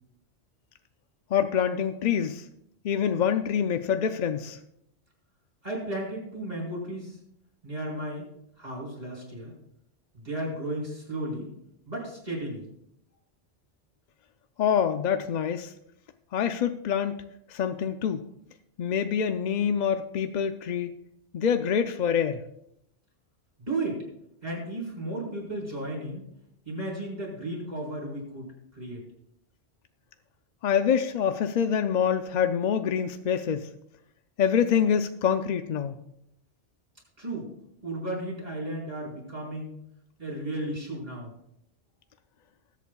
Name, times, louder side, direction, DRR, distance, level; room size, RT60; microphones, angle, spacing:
voice 1, 1.3-2.4 2.8-4.6 14.6-15.7 16.3-17.2 17.5-18.3 18.8-20.9 21.3-22.4 30.6-33.7 34.4-36.0, left 8 dB, 55° left, 8 dB, 0.5 m, -26 dB
voice 2, 5.6-7.2 7.6-8.3 8.6-9.5 10.1-11.5 11.9-12.7 23.6-24.0 24.4-26.2 26.6-29.0 37.2-37.5 37.8-39.7 40.2-41.3, right 1 dB, 40° right, -5 dB, 4.6 m, -34 dB
20.0 x 8.4 x 2.3 m, 0.78 s
omnidirectional pair, 1.2 m